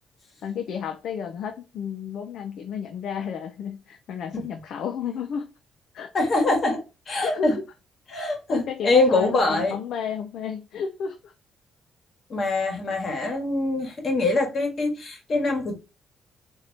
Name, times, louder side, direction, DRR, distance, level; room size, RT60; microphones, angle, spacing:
voice 1, 0.4-5.5 5.9-6.1 7.1-7.6 8.2-11.3, left 7 dB, 70° left, 0.4 m, -32 dB
voice 2, 6.1-6.8 7.1-7.6 8.1-9.7 12.3-15.8, left 2 dB, 50° left, 1.3 m, -23 dB
3.4 x 2.7 x 2.7 m
cardioid pair, 90°, 0 cm